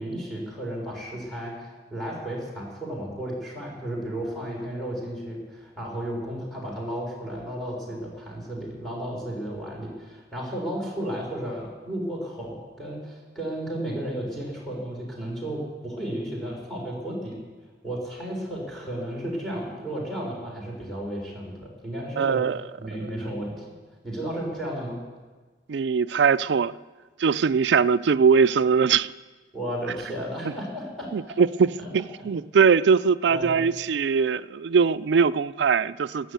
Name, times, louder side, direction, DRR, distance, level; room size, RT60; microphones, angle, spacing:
voice 1, 0.0-17.4 17.8-22.4 22.8-23.7 24.0-25.0 29.5-31.1 31.8-31.9 33.3-33.6, right 1 dB, ahead, 3.9 m, -33 dB
voice 2, 22.2-22.6 23.0-23.1 25.7-26.8 27.2-29.1 31.1-36.3, right 6 dB, 75° right, 0.4 m, -21 dB
13.0 x 11.5 x 8.0 m
head